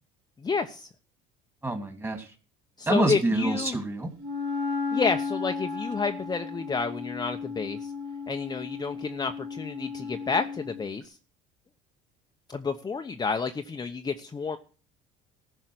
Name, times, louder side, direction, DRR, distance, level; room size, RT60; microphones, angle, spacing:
voice 1, 0.4-0.9 2.8-3.8 4.9-7.9 8.3-11.2 12.5-14.6, left 5 dB, 25° left, 6 dB, 0.9 m, -30 dB
voice 2, 1.6-2.3 2.9-4.1, right 2 dB, 15° right, 7 dB, 2.6 m, -27 dB
Wind instrument woodwind instrument, 4.2-10.8, left 5 dB, 70° right, 4.0 m, -34 dB
14.5 x 5.6 x 7.9 m, 0.38 s
supercardioid pair, 90°, 18 cm